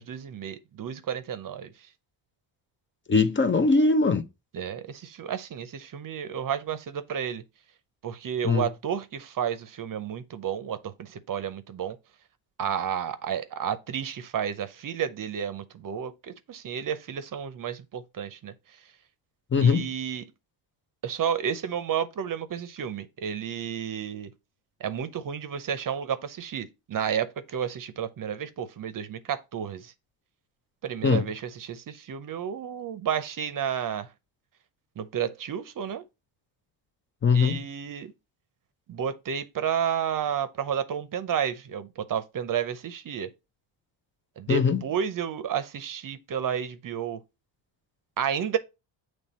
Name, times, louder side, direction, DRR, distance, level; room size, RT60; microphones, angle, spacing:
voice 1, 0.0-1.7 4.5-7.4 8.0-12.0 12.6-18.5 19.6-20.3 21.0-24.3 24.8-29.9 30.8-34.1 35.0-36.0 37.3-38.1 38.9-43.3 44.4-47.2 48.2-48.6, right 8 dB, 45° right, 0.7 m, -31 dB
voice 2, 3.1-4.3 8.4-8.6 19.5-19.9 31.0-31.2 37.2-37.6 44.5-44.8, left 4 dB, 25° left, 0.5 m, -21 dB
7.1 x 3.3 x 4.2 m
cardioid pair, 85°, 48 cm